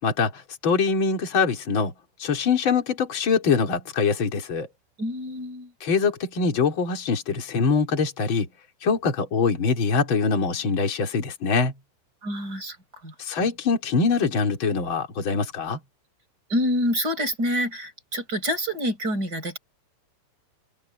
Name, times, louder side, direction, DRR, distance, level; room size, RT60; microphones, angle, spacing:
voice 1, 0.0-1.9 2.2-4.7 5.8-8.5 8.8-11.7 13.2-15.8, left 5 dB, 25° left, 3.6 m, -23 dB
voice 2, 5.0-5.7 12.2-12.8 13.0-13.1 16.5-19.6, equal, 20° right, 4.9 m, -27 dB
open air
omnidirectional pair, 5.8 m